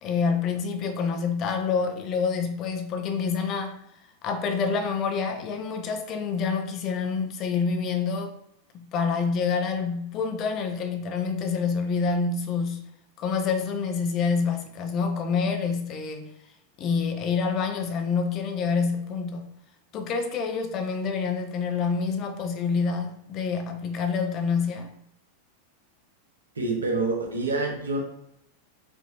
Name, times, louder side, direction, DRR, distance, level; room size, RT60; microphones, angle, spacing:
voice 1, 0.0-3.8 4.2-8.3 8.7-12.9 13.2-16.3 16.8-19.5 19.9-24.9, left 5 dB, 35° left, 6 dB, 0.5 m, -27 dB
voice 2, 26.5-28.0, right 3 dB, 70° right, 1 dB, 0.8 m, -27 dB
4.2 x 2.6 x 2.5 m, 0.79 s
figure-of-eight pair, 90°, 0 cm